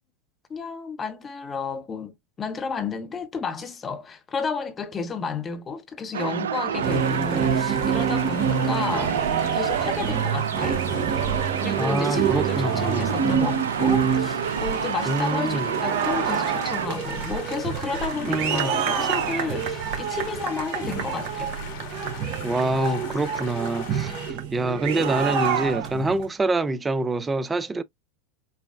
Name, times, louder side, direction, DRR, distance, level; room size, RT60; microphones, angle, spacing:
voice 1, 0.5-2.1 2.4-9.2 9.5-10.8 11.6-21.5, left 5 dB, 25° left, 0.8 m, -32 dB
sound 1, 6.1-16.9, right 8 dB, 80° right, 0.3 m, -29 dB
sound 2, 6.7-26.2, right 7 dB, 60° right, 1.0 m, -27 dB
sound 3, 6.8-24.3, left 6 dB, 60° left, 1.4 m, -40 dB
voice 2, 11.8-13.1 15.1-15.7 18.3-18.7 22.4-27.8, right 2 dB, 15° right, 0.5 m, -26 dB
5.6 x 2.2 x 2.4 m
hypercardioid pair, 85°, 0 cm